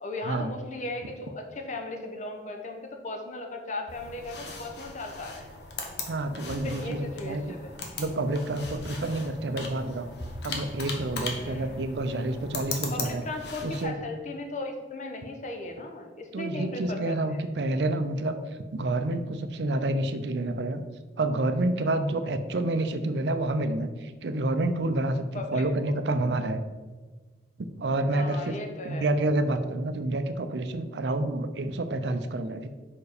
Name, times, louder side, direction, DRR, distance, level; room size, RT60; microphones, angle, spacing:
voice 1, 0.0-5.5 6.5-7.7 11.3-11.8 12.9-17.4 25.3-25.9 28.1-29.1, left 2 dB, 45° left, 4 dB, 0.9 m, -37 dB
sound 1, 3.9-13.8, left 3 dB, 65° left, 1.0 m, -38 dB
voice 2, 6.1-7.4 8.0-10.1 10.4-13.2 13.6-13.9 16.3-20.8 21.2-26.6 27.6-28.5 28.8-32.7, right 2 dB, 75° right, 10 dB, 0.5 m, -28 dB
5.4 x 4.7 x 4.9 m, 1.3 s
head